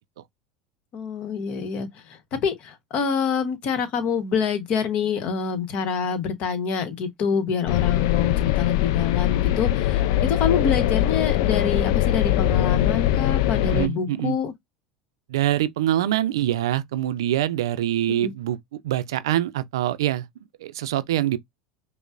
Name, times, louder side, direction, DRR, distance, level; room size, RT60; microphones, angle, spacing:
voice 1, 0.9-14.5 18.2-18.3, left 6 dB, 50° left, 1.1 m, -26 dB
sound 1, 7.7-13.9, left 13 dB, 70° left, 0.4 m, -22 dB
voice 2, 13.6-14.4 15.3-20.3 20.6-21.4, right 13 dB, 80° right, 0.4 m, -24 dB
5.2 x 2.1 x 2.4 m
hypercardioid pair, 95°, 2 cm